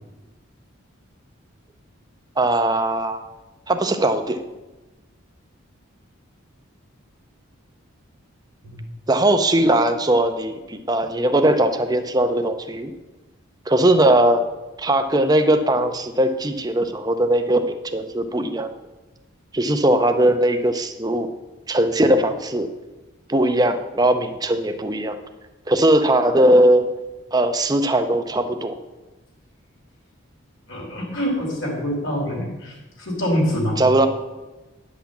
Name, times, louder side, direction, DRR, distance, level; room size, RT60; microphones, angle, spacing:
voice 1, 2.4-3.2 3.7-4.4 9.1-12.9 13.7-14.4 14.8-18.7 19.5-21.3 21.7-22.7 23.3-25.2 25.7-26.9 27.3-28.7 33.8-34.1, right 1 dB, 20° right, 7 dB, 0.6 m, -19 dB
voice 2, 30.7-33.8, equal, 60° left, -1 dB, 3.2 m, -25 dB
10.0 x 5.9 x 7.2 m, 1.1 s
head